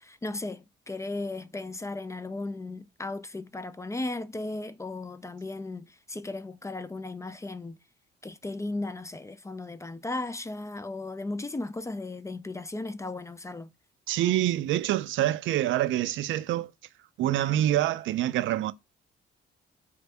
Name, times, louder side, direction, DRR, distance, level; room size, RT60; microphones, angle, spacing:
voice 1, 0.0-7.8 8.2-13.7, left 2 dB, 15° left, 0.3 m, -36 dB
voice 2, 14.1-16.7 17.2-18.7, right 13 dB, 75° right, 0.4 m, -26 dB
4.4 x 2.5 x 3.3 m
cardioid pair, 90°, 20 cm